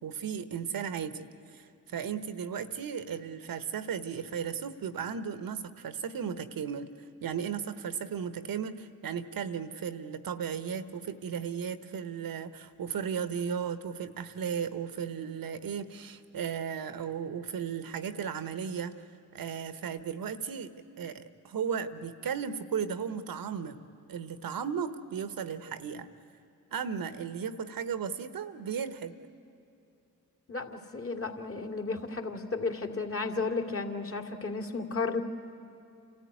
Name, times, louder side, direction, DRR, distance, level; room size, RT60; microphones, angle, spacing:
voice 1, 0.0-6.9 7.2-19.1 19.3-23.8 24.1-26.1 26.7-29.1, right 7 dB, 65° right, 12 dB, 1.1 m, -35 dB
voice 2, 30.5-35.2, left 3 dB, 35° left, 5 dB, 2.4 m, -33 dB
28.0 x 13.5 x 9.6 m, 2.5 s
supercardioid pair, 40°, 38 cm